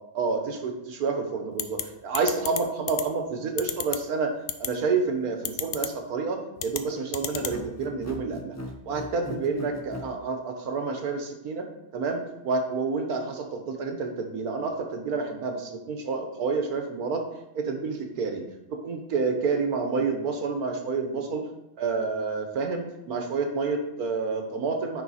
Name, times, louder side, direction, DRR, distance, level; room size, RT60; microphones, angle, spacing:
voice 1, 0.1-8.6 8.8-11.7 11.9-17.2 17.5-18.4 18.7-21.4 21.8-25.0, right 4 dB, 85° right, 4 dB, 1.6 m, -29 dB
sound 1, 1.6-1.8 2.1-2.6 2.9-3.0 3.6-4.0 4.5-4.7 5.4-5.9 6.6-6.8 7.1-7.5, left 11 dB, 85° left, 1.1 m, -29 dB
sound 2, 7.3-10.1, equal, 25° left, 0.3 m, -38 dB
9.6 x 3.9 x 4.2 m, 0.87 s
omnidirectional pair, 1.5 m